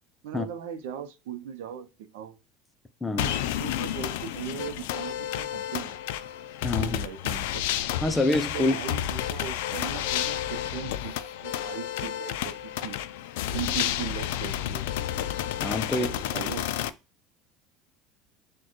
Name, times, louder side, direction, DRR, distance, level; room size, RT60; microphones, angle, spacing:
voice 1, 0.2-2.3 3.1-6.0 6.8-7.6 8.5-13.0 13.5-14.9 15.9-17.0, right 9 dB, 90° right, 0.6 m, -38 dB
sound 1, 3.2-16.9, left 12 dB, 90° left, 0.3 m, -31 dB
voice 2, 6.6-7.0 8.0-8.8 15.6-16.1, left 2 dB, 10° left, 0.4 m, -26 dB
6.3 x 2.2 x 3.0 m
cardioid pair, 145°, 0 cm